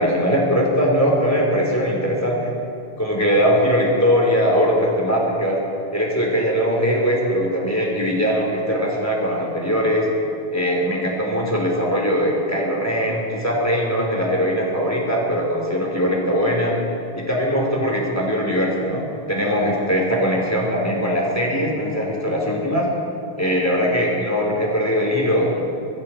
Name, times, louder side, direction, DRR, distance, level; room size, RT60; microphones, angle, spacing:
voice 1, 0.0-2.5 3.0-5.6 5.9-10.1 10.5-16.8 17.2-22.9 23.4-25.6, equal, 15° left, -3 dB, 3.4 m, -20 dB
22.5 x 14.5 x 4.4 m, 2.7 s
omnidirectional pair, 1.1 m